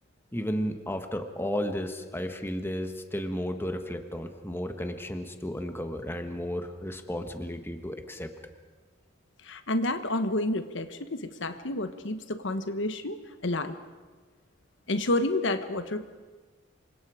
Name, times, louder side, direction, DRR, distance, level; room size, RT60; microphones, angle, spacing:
voice 1, 0.3-8.3, equal, 10° left, 6 dB, 1.4 m, -33 dB
voice 2, 9.4-13.8 14.9-16.3, left 1 dB, 65° left, 9 dB, 1.2 m, -30 dB
27.5 x 25.0 x 5.0 m, 1.3 s
head